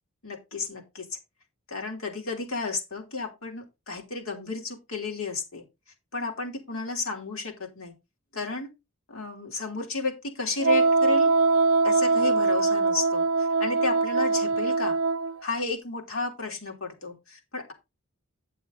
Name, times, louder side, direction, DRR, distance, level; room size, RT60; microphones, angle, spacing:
voice 1, 0.2-1.1 1.7-5.6 6.1-7.9 8.3-8.7 9.1-11.3 11.8-13.2 13.6-14.9 15.4-17.7, left 3 dB, 70° left, 1 dB, 3.2 m, -32 dB
Wind instrument woodwind instrument, 10.6-15.3, right 3 dB, 65° right, 0.4 m, -22 dB
10.0 x 6.9 x 3.9 m, 0.24 s
head